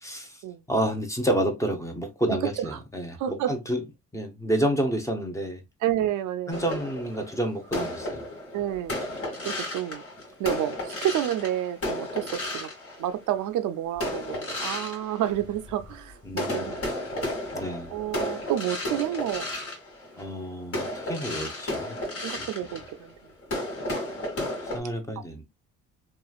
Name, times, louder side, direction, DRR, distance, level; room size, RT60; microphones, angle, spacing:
voice 1, 0.0-3.8 4.1-5.6 6.5-8.2 16.2-16.7 17.5-17.9 20.2-22.0 22.4-22.5 24.7-25.4, right 1 dB, 10° left, 0.7 m, -29 dB
voice 2, 2.3-2.8 3.2-3.5 5.8-6.6 8.5-9.0 9.4-10.0 10.4-12.7 13.0-17.3 17.9-19.5 22.2-23.1, right 12 dB, 80° right, 0.5 m, -30 dB
sound 1, 6.5-13.4 14.0-16.0 16.3-24.8, left 1 dB, 50° left, 1.4 m, -33 dB
3.1 x 2.4 x 2.3 m
cardioid pair, 90°, 30 cm